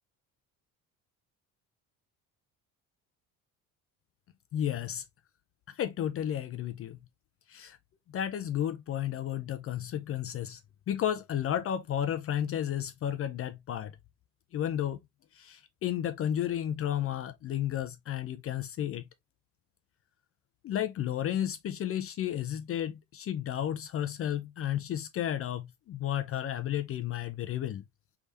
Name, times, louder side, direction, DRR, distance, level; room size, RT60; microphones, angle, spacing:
voice 1, 4.5-5.0 5.8-7.0 7.5-7.8 8.1-10.6 10.9-13.9 14.5-15.0 15.3-19.0 20.6-27.8, left 10 dB, 40° left, 0.4 m, -32 dB
4.8 x 3.4 x 2.7 m
cardioid pair, 150°, 37 cm